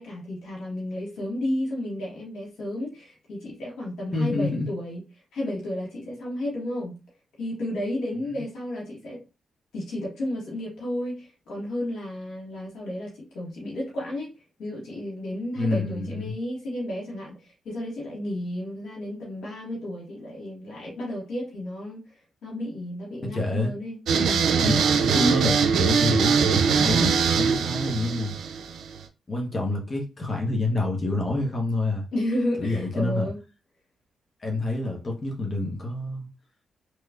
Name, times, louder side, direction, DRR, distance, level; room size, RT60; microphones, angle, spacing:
voice 1, 0.0-5.0 5.3-7.0 7.4-9.2 9.7-14.3 14.6-22.0 22.4-24.8 32.1-33.4, left 1 dB, 85° left, 1.6 m, -32 dB
voice 2, 4.1-4.6 8.3-8.4 15.6-16.3 23.3-23.7 24.5-28.3 29.3-32.0 32.6-33.3 34.4-36.3, left 2 dB, 40° left, 1.1 m, -27 dB
sound 1, 24.1-29.0, right 6 dB, 80° right, 0.4 m, -22 dB
3.3 x 3.0 x 2.4 m
cardioid pair, 65°, 0 cm